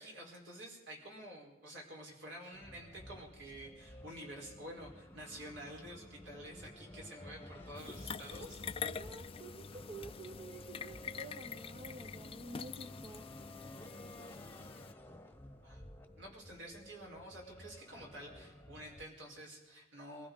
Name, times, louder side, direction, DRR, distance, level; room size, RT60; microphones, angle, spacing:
voice 1, 0.0-8.6 15.6-20.3, right 1 dB, 65° right, -1 dB, 4.8 m, -50 dB
sound 1, 2.5-19.0, left 1 dB, 10° left, 1.1 m, -53 dB
sound 2, 7.8-14.9, left 6 dB, 30° left, 0.4 m, -46 dB
voice 2, 8.8-13.2, right 2 dB, 30° right, 6 dB, 0.8 m, -50 dB
23.5 x 15.0 x 4.0 m, 1.1 s
head